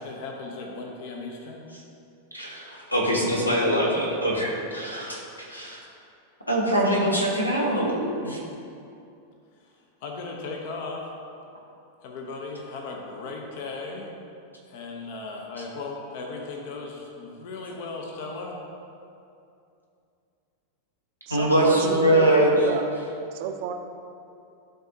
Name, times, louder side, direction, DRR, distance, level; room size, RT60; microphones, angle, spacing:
voice 1, 0.0-1.7 10.0-11.0 12.0-14.1 14.7-18.6, left 3 dB, 50° left, 1 dB, 0.8 m, -36 dB
voice 2, 2.3-5.2 5.5-5.8 6.5-8.4 21.3-22.5, right 1 dB, 85° left, -3 dB, 1.2 m, -23 dB
voice 3, 21.3-23.7, right 7 dB, 50° right, 4 dB, 0.5 m, -32 dB
11.5 x 4.0 x 2.7 m, 2.5 s
figure-of-eight pair, 90°, 0 cm